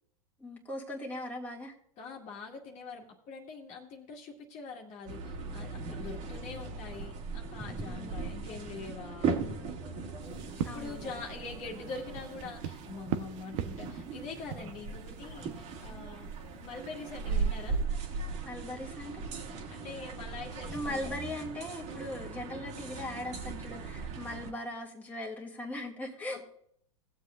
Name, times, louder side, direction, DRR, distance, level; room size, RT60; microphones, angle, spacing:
voice 1, 0.4-1.8 5.9-6.2 7.8-8.2 10.6-11.2 18.4-19.3 20.7-26.4, left 1 dB, 10° left, -3 dB, 2.2 m, -39 dB
voice 2, 2.0-9.4 10.7-16.3 16.6-17.8 19.7-21.2 26.3-26.4, left 4 dB, 40° left, 0 dB, 2.0 m, -44 dB
sound 1, 5.1-24.5, right 4 dB, 40° right, 2.1 m, -38 dB
sound 2, 10.2-17.9, right 9 dB, 55° right, 1.0 m, -42 dB
18.5 x 7.5 x 2.5 m, 0.68 s
hypercardioid pair, 105°, 18 cm